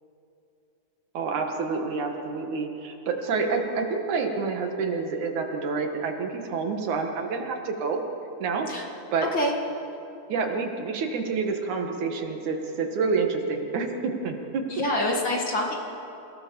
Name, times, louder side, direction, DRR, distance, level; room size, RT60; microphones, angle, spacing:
voice 1, 1.1-8.0 8.4-8.7 9.1-9.3 10.3-14.6, right 4 dB, 75° right, 3 dB, 3.1 m, -28 dB
voice 2, 14.7-15.8, left 1 dB, 40° left, 0 dB, 2.5 m, -26 dB
27.5 x 16.5 x 7.0 m, 2.9 s
omnidirectional pair, 3.5 m